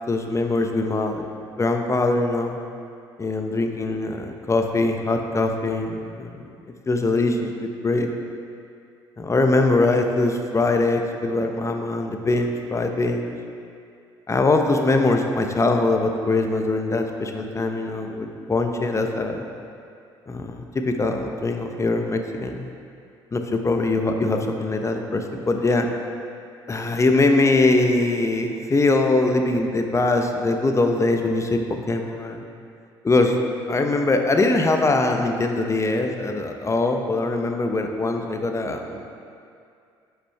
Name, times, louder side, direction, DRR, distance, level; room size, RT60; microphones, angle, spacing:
voice 1, 0.1-1.3 1.6-2.6 3.2-6.4 6.9-8.1 9.2-13.4 14.3-19.4 20.3-22.7 23.3-25.9 26.7-32.5 33.0-33.4 33.7-39.0, left 2 dB, 25° left, 4 dB, 0.9 m, -22 dB
9.9 x 5.8 x 3.4 m, 2.4 s
hypercardioid pair, 55°, 11 cm